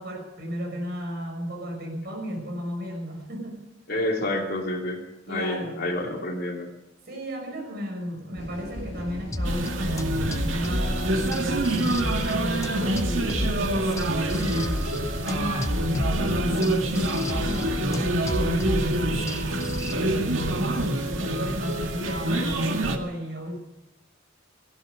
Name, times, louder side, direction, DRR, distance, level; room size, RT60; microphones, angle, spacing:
voice 1, 0.0-3.6 5.3-5.9 7.1-14.9 15.3-19.5 19.9-23.6, equal, 55° right, 2 dB, 6.3 m, -34 dB
voice 2, 3.9-6.7, left 1 dB, 55° left, 1 dB, 3.1 m, -29 dB
sound 1, 8.3-22.2, equal, 70° left, 6.6 m, -39 dB
sound 2, 9.3-19.9, left 1 dB, 15° left, 0.8 m, -32 dB
sound 3, 9.4-23.0, right 1 dB, 80° right, 2.1 m, -26 dB
17.5 x 15.5 x 5.2 m, 0.94 s
head